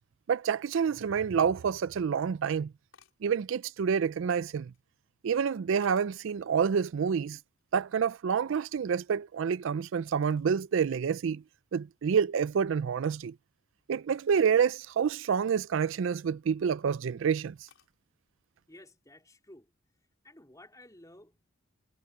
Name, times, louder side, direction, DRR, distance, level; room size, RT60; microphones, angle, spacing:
voice 1, 0.3-2.7 3.2-4.7 5.2-7.4 7.7-11.4 11.7-13.3 13.9-17.6, right 7 dB, 60° right, 0.4 m, -28 dB
sound 1, 2.9-3.3 4.1-4.9 5.5-6.3 6.7-7.8 8.1-9.4 10.1-10.6 11.1-11.2 11.8-12.0 12.4-12.8 14.4-14.6 16.3-16.8 17.7-18.0, left 7 dB, 65° left, 5.1 m, -64 dB
voice 2, 18.7-19.7 20.2-21.5, left 1 dB, 15° left, 4.1 m, -54 dB
head